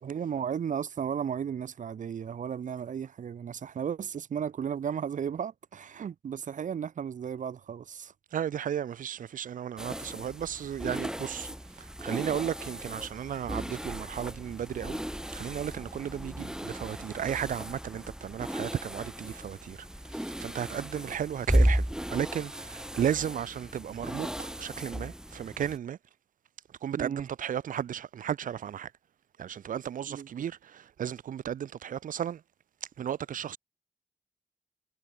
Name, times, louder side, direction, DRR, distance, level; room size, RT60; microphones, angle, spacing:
voice 1, 0.0-8.1 20.8-20.9 27.0-27.3 30.1-30.3, right 8 dB, 70° right, 0.9 m, -34 dB
voice 2, 8.3-11.5 11.8-15.0 15.3-26.0 26.8-28.9 29.4-32.4 33.0-33.6, right 9 dB, 90° right, 1.8 m, -34 dB
sound 1, 9.8-25.8, equal, 5° right, 1.4 m, -34 dB
cardioid pair, 55°, 13 cm